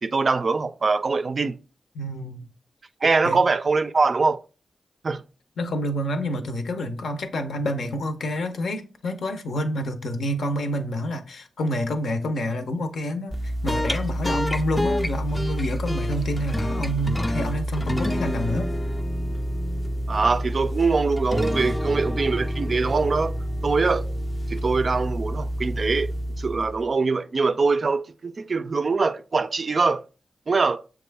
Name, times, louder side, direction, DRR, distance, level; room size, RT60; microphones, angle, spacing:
voice 1, 0.0-1.6 3.0-4.4 5.0-5.2 20.1-23.3 23.6-24.1 24.5-30.0 30.5-30.8, right 4 dB, 50° right, 0.3 m, -23 dB
voice 2, 1.9-2.5 3.2-3.4 5.6-18.7, equal, 80° left, 0.6 m, -28 dB
sound 1, 13.3-26.9, equal, 20° left, 0.4 m, -27 dB
6.7 x 2.3 x 3.3 m
cardioid pair, 55°, 0 cm